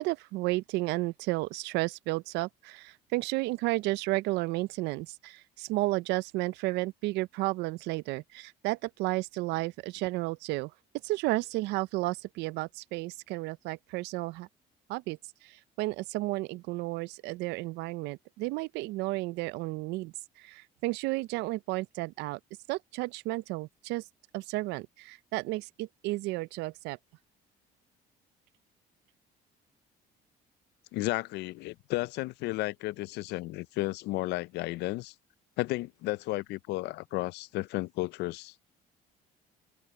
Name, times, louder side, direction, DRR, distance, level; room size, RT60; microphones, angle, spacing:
voice 1, 0.0-10.7 11.0-14.5 14.9-22.4 22.7-24.0 24.3-27.0, right 20 dB, 90° right, 0.5 m, -32 dB
voice 2, 30.9-35.1 35.6-38.5, left 19 dB, 80° left, 0.4 m, -33 dB
open air
cardioid pair, 110°, 17 cm